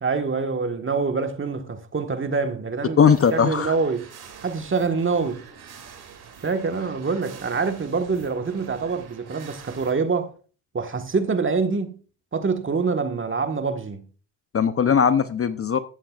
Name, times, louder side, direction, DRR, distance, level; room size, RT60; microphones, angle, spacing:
voice 1, 0.0-3.0 3.3-4.1 4.4-5.4 6.4-10.3 10.7-12.0 12.3-14.0, right 4 dB, 30° right, 1.5 m, -25 dB
voice 2, 3.0-3.7 14.5-15.8, left 7 dB, 30° left, 0.7 m, -19 dB
sound 1, 3.0-9.9, right 7 dB, 60° right, 2.8 m, -45 dB
13.5 x 10.0 x 2.4 m
supercardioid pair, 65°, 43 cm